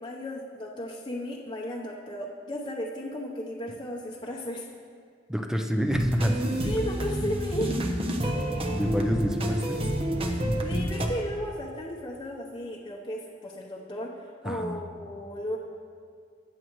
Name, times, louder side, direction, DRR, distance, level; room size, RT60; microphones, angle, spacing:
voice 1, 0.0-4.7 6.6-7.8 10.6-14.1 14.4-15.6, equal, 25° left, -4 dB, 0.9 m, -34 dB
voice 2, 5.3-6.7 8.7-9.8 14.4-14.7, equal, 5° right, 4 dB, 0.7 m, -28 dB
sound 1, 5.9-11.1, equal, 30° right, 0.9 m, -28 dB
21.5 x 7.8 x 3.1 m, 2.2 s
head